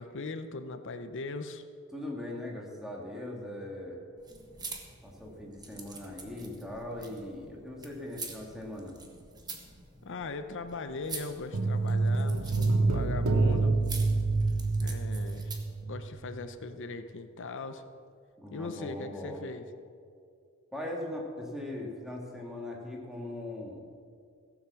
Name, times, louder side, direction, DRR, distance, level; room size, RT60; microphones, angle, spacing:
voice 1, 0.0-1.6 10.0-13.8 14.8-17.8 18.5-19.6, left 3 dB, 60° left, 9 dB, 0.7 m, -40 dB
voice 2, 1.9-4.0 5.0-8.9 18.4-19.5 20.7-23.8, left 1 dB, ahead, -2 dB, 2.3 m, -40 dB
sound 1, 4.2-15.8, right 3 dB, 20° right, 1.4 m, -46 dB
sound 2, 11.5-16.0 16.2-16.4, right 3 dB, 75° right, 0.9 m, -27 dB
16.5 x 7.3 x 7.0 m, 2.3 s
head